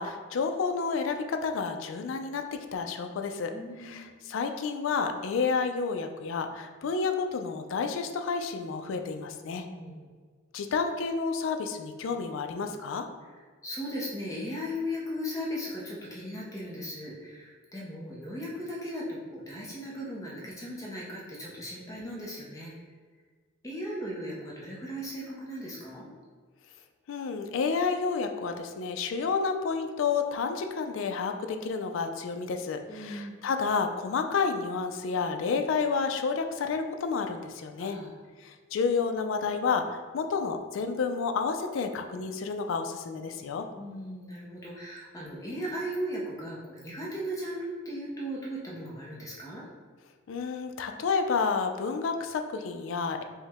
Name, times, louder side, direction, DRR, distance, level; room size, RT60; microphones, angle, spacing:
voice 1, 0.0-3.5 3.8-9.7 10.5-13.1 27.1-38.0 38.4-43.7 50.3-53.2, left 5 dB, 70° left, 6 dB, 0.3 m, -30 dB
voice 2, 3.5-4.0 9.6-10.1 13.3-22.7 23.6-26.1 32.9-33.4 37.8-38.2 43.8-49.6, equal, 15° left, -4 dB, 0.5 m, -37 dB
4.5 x 2.1 x 3.4 m, 1.6 s
head